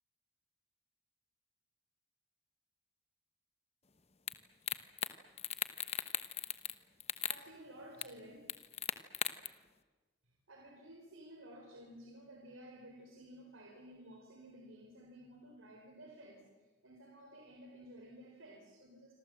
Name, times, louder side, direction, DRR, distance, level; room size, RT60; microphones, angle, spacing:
sound 1, 4.3-4.4 4.7-5.1 5.4-6.7 7.0-7.4 8.0-8.1 8.5-9.5, left 9 dB, 30° left, 1.1 m, -37 dB
voice 1, 7.3-8.4 10.5-16.4 16.8-19.1, right 1 dB, 90° right, 0 dB, 4.2 m, -54 dB
26.5 x 26.5 x 7.7 m, 1.4 s
head